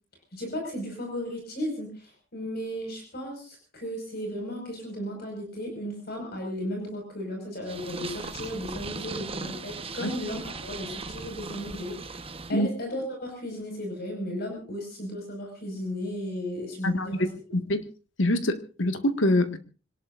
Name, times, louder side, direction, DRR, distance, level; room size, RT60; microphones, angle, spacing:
voice 1, 0.3-17.4, equal, 55° left, 5.4 m, -35 dB
Purr, 7.7-12.5, right 4 dB, 30° right, 1.1 m, -38 dB
voice 2, 16.8-17.3 17.5-17.8 18.2-19.6, left 1 dB, 80° left, 1.7 m, -25 dB
26.0 x 18.5 x 2.5 m
head